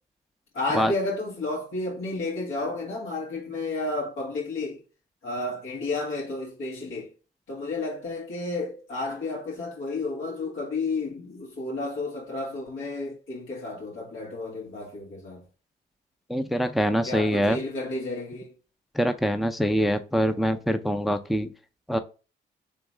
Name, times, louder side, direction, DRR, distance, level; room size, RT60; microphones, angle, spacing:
voice 1, 0.5-4.8 5.2-7.1 7.5-15.4 17.0-18.5, left 2 dB, 90° left, 2.3 m, -32 dB
voice 2, 16.3-17.6 18.9-21.5 21.9-22.0, equal, ahead, 0.5 m, -24 dB
3.6 x 3.0 x 4.9 m
cardioid pair, 65°, 20 cm